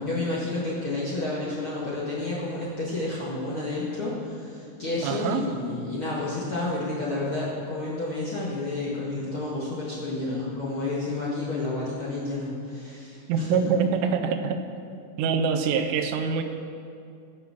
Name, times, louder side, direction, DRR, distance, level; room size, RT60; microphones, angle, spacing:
voice 1, 0.0-13.6, left 2 dB, 70° left, -7 dB, 1.2 m, -30 dB
voice 2, 5.0-5.4 13.3-14.6 15.2-16.4, right 6 dB, 80° right, 6 dB, 2.4 m, -24 dB
18.0 x 7.0 x 7.6 m, 2.4 s
omnidirectional pair, 5.9 m